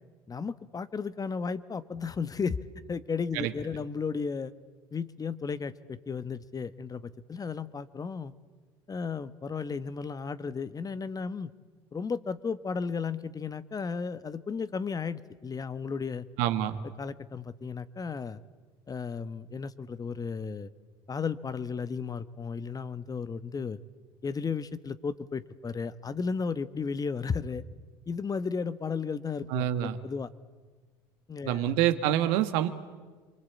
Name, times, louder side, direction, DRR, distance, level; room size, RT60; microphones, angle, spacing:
voice 1, 0.3-2.6 2.9-4.5 4.9-8.3 8.9-11.5 11.9-16.2 17.0-18.4 18.9-20.7 21.1-23.8 24.2-27.6 28.1-30.3 31.3-31.7, left 5 dB, 30° left, 14 dB, 1.3 m, -34 dB
voice 2, 16.4-16.8 29.5-30.0 31.4-32.7, right 12 dB, 75° right, 10 dB, 1.7 m, -26 dB
28.0 x 23.5 x 8.5 m, 1.4 s
hypercardioid pair, 75°, 13 cm